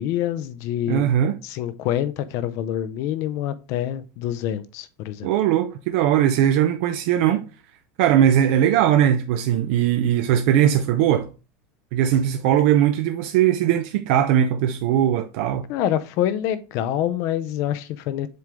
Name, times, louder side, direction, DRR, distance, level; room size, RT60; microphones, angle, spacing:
voice 1, 0.0-1.1 1.4-5.3 15.7-18.3, left 11 dB, 40° left, 0.5 m, -26 dB
voice 2, 0.9-1.4 5.2-7.4 8.0-11.3 11.9-15.7, right 10 dB, 55° right, 0.5 m, -19 dB
7.6 x 3.7 x 3.5 m
supercardioid pair, 180°, 8 cm